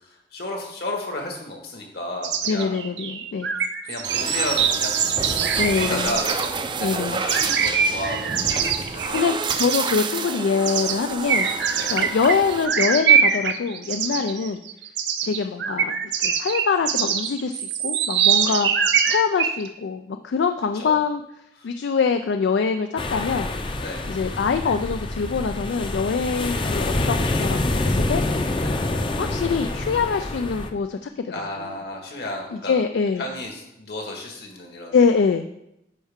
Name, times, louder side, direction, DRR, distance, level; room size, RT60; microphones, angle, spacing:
voice 1, 0.3-2.7 3.8-5.0 5.7-6.5 6.9-9.3 11.7-11.9 14.1-14.3 18.4-18.6 20.8-21.0 21.6-21.7 23.8-24.1 28.6-28.8 31.3-32.7 33.2-34.9, left 1 dB, 65° left, 1 dB, 1.7 m, -32 dB
sound 1, 2.2-6.5 7.3-9.2 9.5-9.9 10.6-11.0 11.3-19.7, right 7 dB, 75° right, 0.6 m, -23 dB
voice 2, 2.5-3.5 5.6-6.1 6.8-7.2 8.9-14.6 15.2-21.2 21.6-23.5 24.1-28.2 29.2-31.8 32.5-33.2 34.9-35.5, left 5 dB, 85° left, 7 dB, 0.4 m, -24 dB
sound 2, 4.0-12.7, right 5 dB, 25° right, 0.4 m, -29 dB
lehavre brandung weiter, 23.0-30.7, left 2 dB, 30° left, 0.6 m, -26 dB
9.2 x 5.4 x 3.6 m, 0.83 s
head